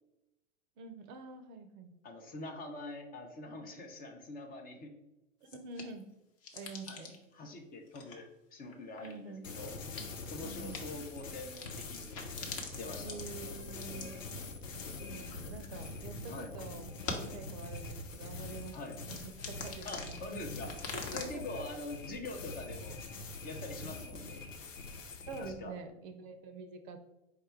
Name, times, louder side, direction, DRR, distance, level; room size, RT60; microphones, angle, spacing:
voice 1, 0.8-1.9 5.4-6.1 6.5-7.2 9.0-9.5 10.4-10.8 13.0-14.2 15.0-20.3 20.9-21.4 25.3-27.0, right 4 dB, 40° right, 8 dB, 0.6 m, -47 dB
voice 2, 2.0-4.9 6.9-7.0 7.3-9.8 10.3-12.2 12.7-13.2 16.3-16.5 18.7-19.0 19.8-20.7 21.1-23.0 23.4-24.4 25.4-25.7, left 2 dB, 25° left, 2 dB, 0.6 m, -44 dB
sound 1, 5.4-6.0 6.4-7.3 7.9-8.2 8.7-9.2 9.5-10.1 10.7-10.8 11.4-15.4 15.8-16.1 16.5-16.6 17.0-17.4 17.7-17.8 18.4-21.2, left 4 dB, 40° left, 1.0 m, -45 dB
sound 2, 9.4-25.5, left 3 dB, 80° left, 0.6 m, -44 dB
4.7 x 2.2 x 4.5 m, 0.94 s
figure-of-eight pair, 85°, 38 cm